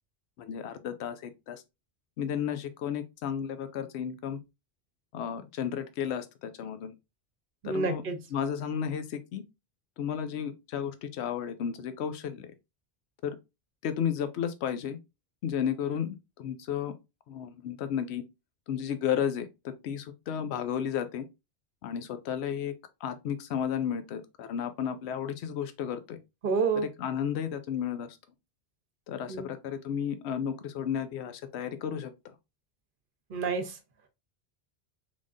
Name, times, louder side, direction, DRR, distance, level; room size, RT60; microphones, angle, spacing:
voice 1, 0.4-1.6 2.2-4.4 5.1-6.9 7.6-8.0 8.3-9.4 10.0-12.5 13.2-13.4 13.8-15.0 15.4-16.9 17.3-18.2 18.7-21.3 21.8-22.7 23.0-26.2 26.7-28.1 29.1-32.1, left 8 dB, 80° left, 0.9 m, -33 dB
voice 2, 7.6-8.2 26.4-26.9 29.3-29.5 33.3-33.8, right 4 dB, 55° right, 0.9 m, -28 dB
3.6 x 3.5 x 2.5 m
omnidirectional pair, 1.1 m